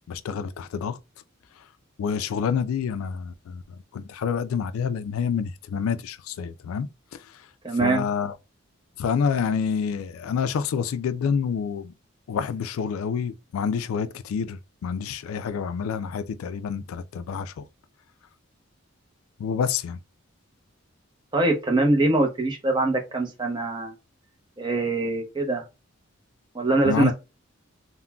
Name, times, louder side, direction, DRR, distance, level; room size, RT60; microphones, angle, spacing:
voice 1, 0.1-1.0 2.0-7.3 7.8-8.3 9.0-11.9 12.3-17.6 19.4-20.0 26.9-27.1, left 6 dB, 85° left, 0.3 m, -28 dB
voice 2, 7.6-8.0 21.3-23.9 24.6-25.6 26.5-27.1, right 2 dB, 20° right, 0.7 m, -23 dB
3.6 x 2.2 x 2.2 m
head